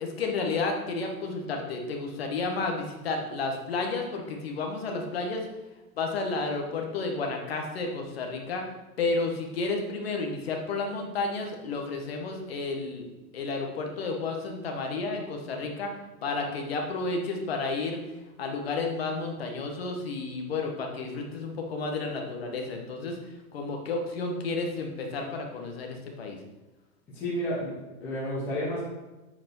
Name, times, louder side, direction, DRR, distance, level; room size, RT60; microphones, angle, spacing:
voice 1, 0.0-5.5 6.0-8.6 9.0-13.0 13.3-15.9 16.2-18.0 18.4-23.2 23.5-26.4, left 3 dB, 40° left, 2 dB, 1.4 m, -31 dB
voice 2, 27.1-28.8, equal, 5° left, -9 dB, 0.9 m, -31 dB
8.4 x 4.8 x 6.0 m, 1.1 s
hypercardioid pair, 180°, 45 cm